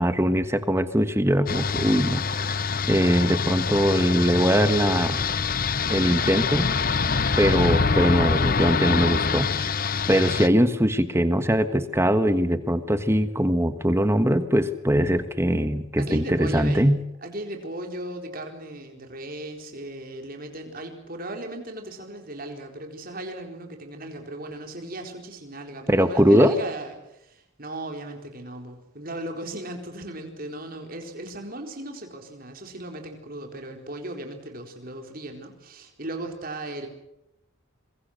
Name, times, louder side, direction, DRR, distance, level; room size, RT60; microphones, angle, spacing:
voice 1, 0.0-5.2 5.9-6.9 7.4-9.8 10.1-17.0 25.9-26.6, equal, 10° right, 10 dB, 1.3 m, -22 dB
sound 1, 1.5-10.5, left 5 dB, 40° left, 0.8 m, -25 dB
voice 2, 16.0-17.0 17.2-36.9, right 1 dB, 40° right, 3 dB, 4.2 m, -37 dB
25.5 x 23.5 x 6.6 m, 0.87 s
head